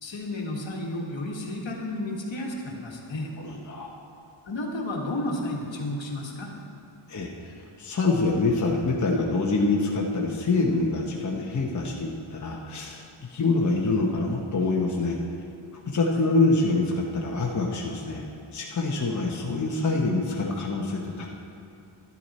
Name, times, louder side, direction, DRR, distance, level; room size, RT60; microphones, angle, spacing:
voice 1, 0.0-3.3 4.4-6.5 16.0-16.2, left 1 dB, 65° left, -1 dB, 1.6 m, -32 dB
voice 2, 3.4-3.9 7.1-7.5 7.8-15.2 15.9-18.2 18.5-21.3, left 3 dB, 35° left, -2 dB, 0.9 m, -25 dB
11.0 x 11.0 x 4.2 m, 2.6 s
wide cardioid pair, 135°, 50 cm